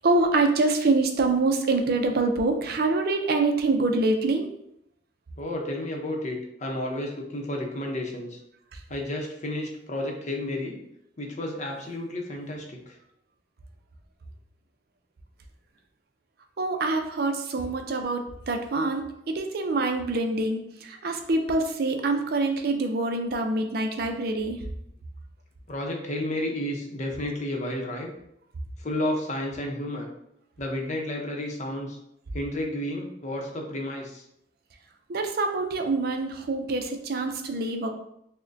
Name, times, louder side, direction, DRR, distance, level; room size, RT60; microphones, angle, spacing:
voice 1, 0.0-4.5 16.6-24.6 35.1-37.9, right 3 dB, 55° right, 5 dB, 0.5 m, -25 dB
voice 2, 5.4-8.4 8.9-10.8 11.2-12.9 25.7-28.1 28.8-30.1 30.6-32.0 32.3-34.2, left 1 dB, 40° left, 1 dB, 0.7 m, -31 dB
6.1 x 2.1 x 2.6 m, 0.76 s
head